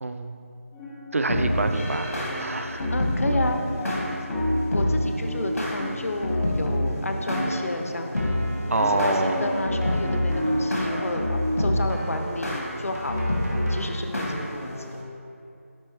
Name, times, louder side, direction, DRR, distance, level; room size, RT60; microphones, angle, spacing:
voice 1, 0.0-0.4 1.1-2.9 8.7-9.4, right 2 dB, 65° right, 7 dB, 0.4 m, -26 dB
sound 1, 0.7-11.6, equal, 5° left, 0.3 m, -33 dB
sound 2, 1.3-15.0, left 1 dB, 85° left, 1.5 m, -28 dB
voice 2, 2.9-3.6 4.7-8.5 8.9-13.4 13.7-14.7, left 2 dB, 70° left, 4 dB, 0.6 m, -31 dB
Keyboard (musical), 7.3-13.9, equal, 90° right, 1.3 m, -40 dB
9.7 x 3.3 x 3.2 m, 2.6 s
figure-of-eight pair, 170°, 8 cm